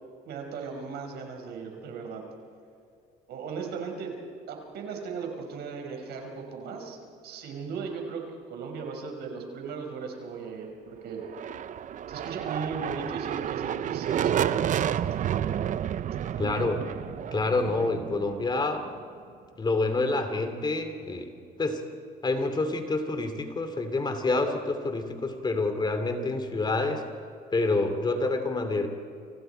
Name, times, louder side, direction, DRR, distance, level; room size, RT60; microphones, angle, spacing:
voice 1, 0.3-2.2 3.3-4.2 4.5-7.0 7.2-8.2 8.5-11.2 12.1-15.1, right 5 dB, 75° right, 2 dB, 5.3 m, -37 dB
sound 1, 11.2-19.0, right 10 dB, 50° right, 0.7 m, -30 dB
voice 2, 16.4-16.8 17.3-18.9 19.6-21.3 21.6-21.8 22.2-27.0 27.5-28.9, left 3 dB, 25° left, 7 dB, 2.7 m, -27 dB
29.5 x 26.5 x 4.6 m, 2.4 s
cardioid pair, 110°, 17 cm